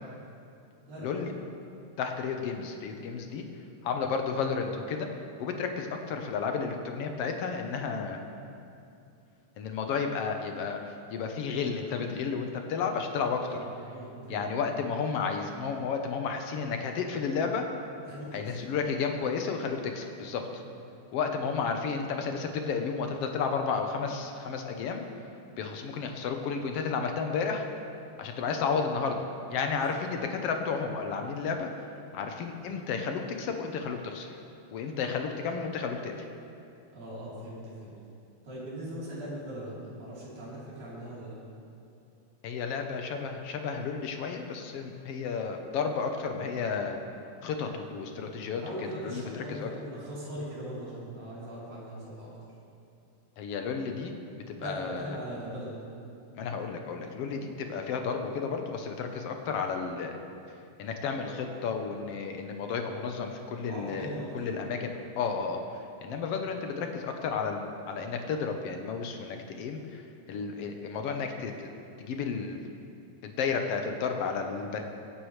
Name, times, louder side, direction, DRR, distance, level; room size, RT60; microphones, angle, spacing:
voice 1, 0.9-1.4 13.2-13.7 13.9-14.4 18.0-18.5 20.4-20.6 29.9-30.0 35.0-35.2 36.9-37.9 38.4-41.3 48.6-52.3 54.6-55.8 57.2-57.4 63.7-64.6, right 1 dB, 75° right, -9 dB, 5.1 m, -40 dB
voice 2, 2.0-3.4 3.8-5.1 5.4-8.2 9.6-13.5 14.3-17.6 18.3-20.6 21.1-25.0 25.6-27.6 28.2-31.8 32.1-34.3 34.7-36.3 42.4-47.0 47.4-48.6 49.0-49.7 53.4-55.2 56.3-60.2 60.8-64.1 64.3-71.7 72.0-72.6 73.2-74.8, left 5 dB, 65° left, 4 dB, 1.7 m, -32 dB
23.5 x 9.7 x 3.2 m, 2.7 s
omnidirectional pair, 3.4 m